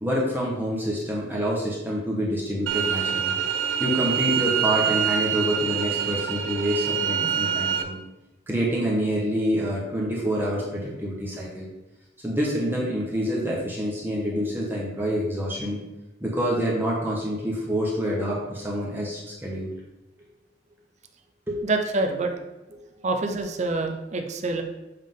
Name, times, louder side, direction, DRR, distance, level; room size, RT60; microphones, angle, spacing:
voice 1, 0.0-3.3 3.8-8.0 8.5-11.7 12.2-15.8 16.2-19.7 21.5-21.6, equal, 10° right, -4 dB, 1.0 m, -27 dB
sound 1, 2.7-7.8, right 8 dB, 85° right, 0.5 m, -25 dB
voice 2, 21.6-22.3 23.0-24.6, right 2 dB, 35° right, 4 dB, 0.6 m, -26 dB
7.5 x 3.6 x 3.7 m, 1.0 s
head